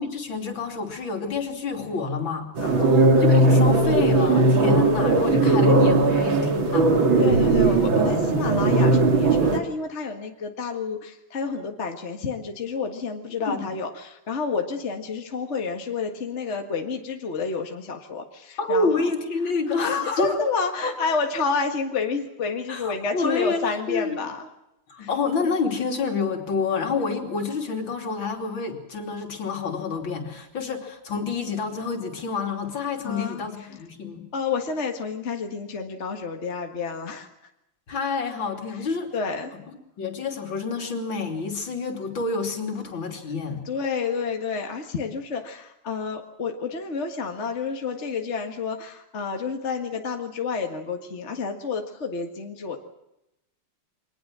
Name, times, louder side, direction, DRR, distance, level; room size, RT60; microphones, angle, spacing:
voice 1, 0.0-2.5 2.9-6.9 13.5-13.7 18.6-20.5 20.8-20.9 22.7-24.3 24.9-34.3 37.9-39.1 40.0-43.6, left 4 dB, 60° left, 3 dB, 3.6 m, -28 dB
voice 2, 2.6-3.0 7.2-19.1 19.8-24.5 25.0-25.1 33.0-33.4 34.3-37.3 39.1-39.5 43.7-52.8, left 5 dB, 35° left, 3 dB, 1.9 m, -29 dB
sound 1, 2.6-9.6, right 2 dB, 65° right, 2.9 m, -18 dB
23.5 x 19.5 x 7.5 m, 0.87 s
omnidirectional pair, 2.4 m